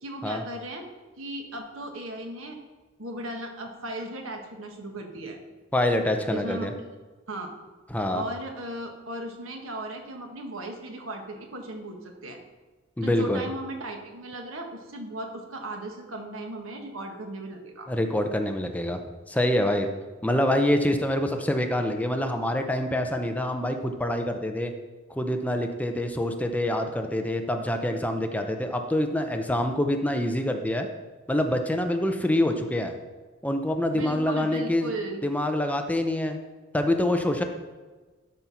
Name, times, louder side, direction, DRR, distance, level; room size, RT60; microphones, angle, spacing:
voice 1, 0.0-0.9 1.2-2.6 3.0-5.4 6.3-6.9 7.3-7.5 8.1-12.4 13.0-17.9 33.9-35.3, right 1 dB, 80° right, 3 dB, 1.5 m, -37 dB
voice 2, 5.7-6.7 7.9-8.2 13.0-13.4 17.9-19.0 19.3-19.9 20.2-24.7 25.2-30.9 31.3-32.9 33.4-34.9 35.2-36.4 36.7-37.4, left 1 dB, 10° left, 5 dB, 0.6 m, -26 dB
11.5 x 4.5 x 5.7 m, 1.3 s
head